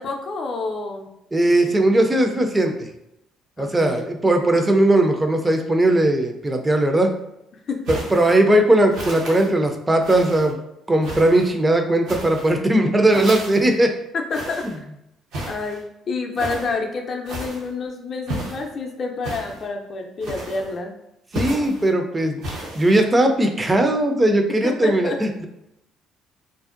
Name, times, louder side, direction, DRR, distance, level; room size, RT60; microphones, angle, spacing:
voice 1, 0.0-1.1 3.6-4.1 7.7-7.9 14.1-14.6 15.5-15.8 16.1-20.9 24.6-25.2, left 3 dB, 50° left, 2 dB, 0.4 m, -28 dB
voice 2, 1.3-2.9 3.6-7.2 7.9-10.6 10.9-13.9 21.3-22.4 22.7-25.4, right 1 dB, 20° right, 4 dB, 0.4 m, -18 dB
sound 1, 7.9-8.4 8.9-9.5 10.0-10.5 11.0-11.5 12.0-12.6 13.1-13.8 14.3-14.8 15.3-15.8 16.4-16.7 17.3-17.7 18.3-18.7 19.2-19.7 20.2-20.8 21.3-21.9 22.4-23.1, right 1 dB, 75° right, 0.7 m, -33 dB
2.5 x 2.1 x 2.4 m, 0.83 s
hypercardioid pair, 60°, 0 cm